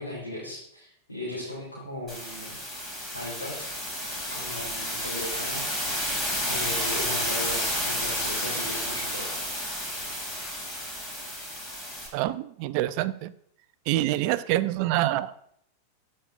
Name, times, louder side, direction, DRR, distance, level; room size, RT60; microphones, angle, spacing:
voice 1, 0.0-2.6 3.1-3.7 4.3-6.1 6.5-9.3, left 1 dB, 80° left, -8 dB, 3.0 m, -37 dB
sound 1, 2.1-12.1, equal, 20° left, 2.8 m, -31 dB
voice 2, 12.1-13.3 13.9-15.3, right 15 dB, 45° right, 15 dB, 0.4 m, -26 dB
14.0 x 5.4 x 2.5 m, 0.68 s
figure-of-eight pair, 90°, 0 cm